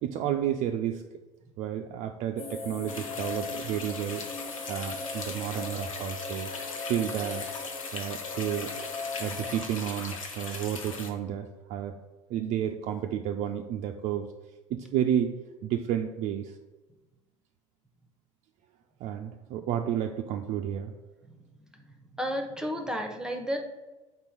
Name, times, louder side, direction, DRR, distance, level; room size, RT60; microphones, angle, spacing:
voice 1, 0.0-1.0 1.6-4.2 4.7-7.5 7.9-8.7 9.2-12.0 12.3-14.3 14.7-15.3 15.6-16.6 19.0-20.9, right 10 dB, 45° right, 4 dB, 0.5 m, -31 dB
sound 1, 2.4-9.6, left 4 dB, 35° left, 0.8 m, -39 dB
sound 2, 2.9-11.1, left 4 dB, 80° left, 0.8 m, -39 dB
voice 2, 22.2-23.6, equal, 5° right, 4 dB, 0.9 m, -32 dB
4.4 x 4.0 x 5.4 m, 1.1 s
figure-of-eight pair, 70°, 17 cm